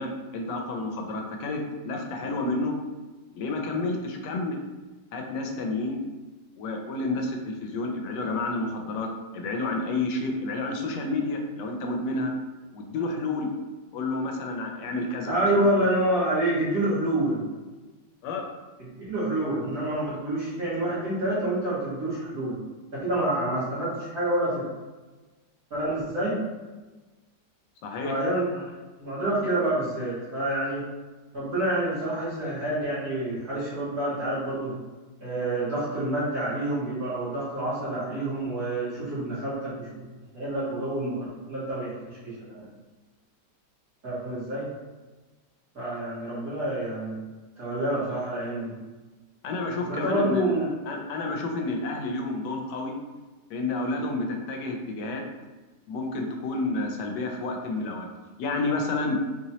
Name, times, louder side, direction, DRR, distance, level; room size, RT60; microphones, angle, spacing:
voice 1, 0.0-2.8 3.3-4.6 5.1-6.0 6.6-12.3 12.7-13.5 13.9-15.7 18.2-18.5 27.8-28.2 49.4-50.4 50.9-53.0 53.5-55.2 55.9-58.1 58.4-59.2, left 2 dB, 80° left, 3 dB, 1.2 m, -30 dB
voice 2, 15.3-17.4 19.0-22.5 22.9-24.6 25.7-26.4 28.0-28.7 29.0-30.8 31.3-34.7 35.2-40.1 40.3-42.6 44.0-44.7 45.7-47.2 47.6-48.7 49.8-50.7, right 1 dB, 60° right, -11 dB, 2.0 m, -28 dB
4.1 x 3.0 x 2.8 m, 1.2 s
omnidirectional pair, 1.9 m